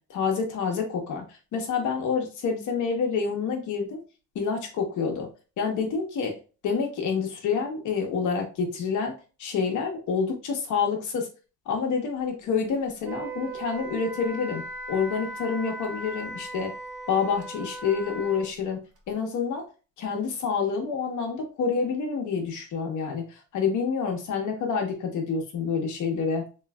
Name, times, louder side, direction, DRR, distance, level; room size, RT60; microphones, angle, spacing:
voice 1, 0.1-1.2 1.5-4.0 4.3-5.3 5.6-6.3 6.6-9.1 9.4-11.3 11.7-14.6 14.9-16.7 17.1-18.8 19.1-19.6 20.0-23.2 23.5-26.4, left 5 dB, 75° left, 2 dB, 1.1 m, -27 dB
Wind instrument woodwind instrument, 13.0-18.5, right 2 dB, 50° right, 1.1 m, -38 dB
3.2 x 2.9 x 2.3 m, 0.34 s
cardioid pair, 90°, 30 cm